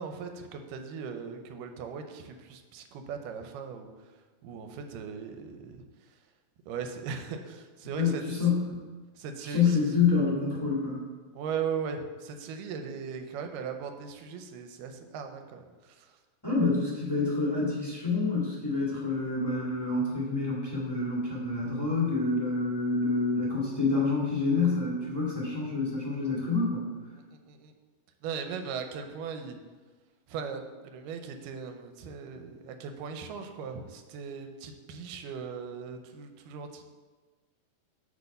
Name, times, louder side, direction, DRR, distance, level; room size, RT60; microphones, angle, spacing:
voice 1, 0.0-3.9 4.4-5.8 6.7-8.2 9.2-9.8 11.3-16.1 27.5-27.7 28.2-29.6 30.3-36.8, right 6 dB, 75° right, 6 dB, 2.1 m, -38 dB
voice 2, 7.9-8.6 9.4-11.0 16.4-26.9, left 4 dB, 30° left, -7 dB, 0.4 m, -27 dB
6.3 x 5.4 x 6.6 m, 1.3 s
omnidirectional pair, 4.2 m